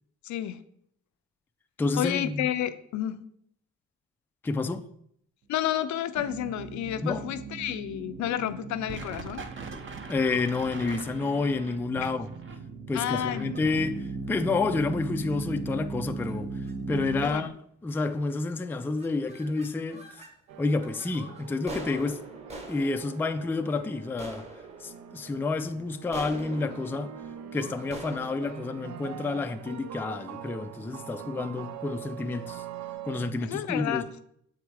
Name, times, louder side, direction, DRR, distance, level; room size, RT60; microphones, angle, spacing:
voice 1, 0.2-0.6 1.9-3.3 5.5-9.5 12.0-12.1 12.9-13.7 17.2-17.5 33.4-34.2, left 11 dB, 70° left, 0.5 m, -31 dB
voice 2, 1.8-2.5 4.4-4.9 7.0-7.2 10.1-12.3 12.9-16.5 16.9-17.6 17.8-20.1 20.6-22.2 22.7-24.5 24.8-27.1 27.5-32.6 33.1-34.0, left 3 dB, 5° left, 0.3 m, -29 dB
sound 1, 6.1-17.3, right 3 dB, 40° right, 0.8 m, -37 dB
sound 2, 14.3-14.6 15.2-15.4 16.1-16.4 16.6-16.7 17.1-17.5 18.0-18.4 18.6-20.3 20.7-29.9, right 1 dB, 20° right, 1.2 m, -45 dB
sound 3, 20.5-33.3, right 10 dB, 65° right, 0.5 m, -44 dB
7.0 x 4.7 x 3.4 m
cardioid pair, 90°, 30 cm